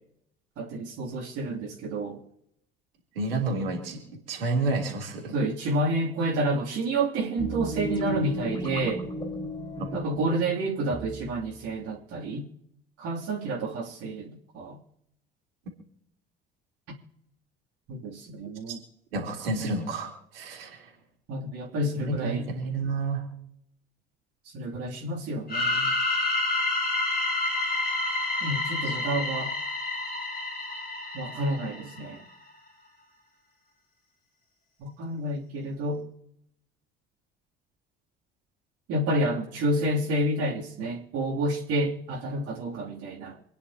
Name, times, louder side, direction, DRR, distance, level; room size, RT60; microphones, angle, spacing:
voice 1, 0.6-2.2 5.3-9.0 9.9-12.4 13.0-14.8 17.9-18.8 21.3-22.5 24.5-25.9 28.4-29.5 31.1-32.2 34.8-36.0 38.9-43.4, right 1 dB, 55° right, -3 dB, 2.9 m, -29 dB
voice 2, 3.2-4.0 4.3-5.3 18.7-18.8 19.1-20.9 22.1-23.2 28.9-29.0, right 2 dB, 75° right, 1 dB, 3.3 m, -30 dB
sound 1, 7.4-11.7, left 1 dB, 15° left, 4.7 m, -34 dB
sound 2, 25.5-32.1, left 2 dB, 30° left, 4.4 m, -29 dB
28.0 x 10.0 x 2.9 m, 0.77 s
figure-of-eight pair, 55°, 29 cm